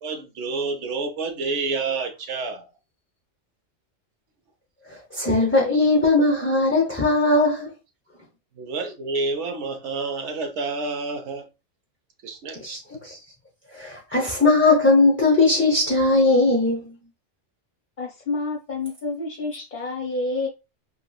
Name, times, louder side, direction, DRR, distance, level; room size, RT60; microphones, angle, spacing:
voice 1, 0.0-2.7 8.6-11.5 12.2-12.8, right 3 dB, 70° right, 1.0 m, -29 dB
voice 2, 5.1-7.7 12.6-13.2 13.7-16.8, left 2 dB, 15° left, 0.5 m, -19 dB
voice 3, 18.0-20.5, left 3 dB, 45° left, 0.7 m, -29 dB
3.0 x 2.9 x 2.2 m
omnidirectional pair, 1.3 m